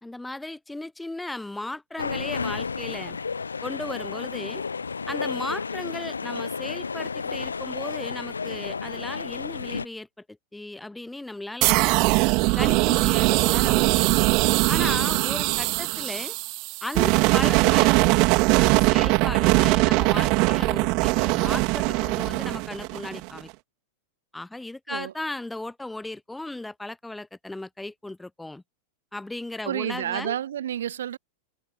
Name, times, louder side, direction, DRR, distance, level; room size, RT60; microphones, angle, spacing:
voice 1, 0.0-3.2 3.6-4.6 5.1-12.0 12.5-14.1 14.7-16.4 16.8-18.3 18.6-23.5 24.3-28.6 29.1-30.4, left 2 dB, 5° left, 3.1 m, -36 dB
sound 1, 2.0-9.9, left 5 dB, 75° left, 3.5 m, -32 dB
sound 2, 11.6-23.4, right 28 dB, 45° right, 1.1 m, -21 dB
voice 2, 14.8-15.4 24.9-25.1 29.6-31.2, right 10 dB, 60° right, 5.0 m, -31 dB
figure-of-eight pair, 90°, 0 cm